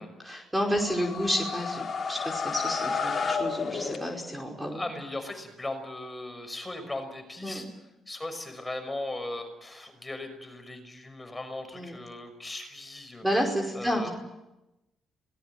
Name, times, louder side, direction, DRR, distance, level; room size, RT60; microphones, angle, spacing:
voice 1, 0.0-4.8 7.4-7.7 11.7-11.9 13.2-14.1, equal, 10° right, 2 dB, 5.1 m, -30 dB
sound 1, 0.7-4.5, left 5 dB, 40° left, 3.5 m, -31 dB
voice 2, 4.7-7.7 8.1-13.2 13.7-14.1, left 2 dB, 15° left, 6 dB, 5.9 m, -38 dB
26.5 x 19.5 x 9.1 m, 0.98 s
cardioid pair, 90°, 0 cm